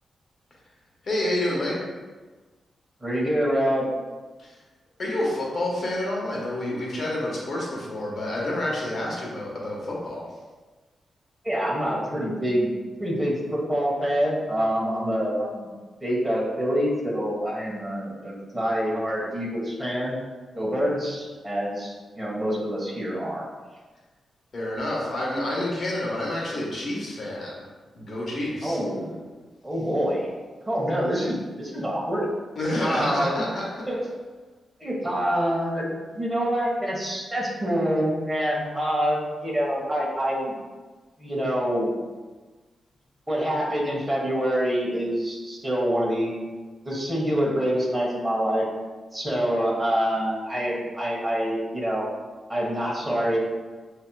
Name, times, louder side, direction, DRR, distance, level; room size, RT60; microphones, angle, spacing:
voice 1, 1.0-1.8 4.4-4.5 5.0-10.3 24.5-27.7 27.9-28.8 32.6-33.8, left 1 dB, 50° left, -4 dB, 1.2 m, -28 dB
voice 2, 3.0-3.9 11.4-12.7 13.0-15.7 16.0-20.2 20.5-23.5 28.6-29.1 29.6-30.3 30.7-32.3 32.8-33.4 33.9-34.0 34.8-40.6 41.2-41.9 43.3-46.3 46.8-48.6 49.1-52.1 52.5-53.4, equal, 10° right, -4 dB, 1.3 m, -26 dB
7.1 x 2.8 x 2.3 m, 1.3 s
cardioid pair, 100°, 0 cm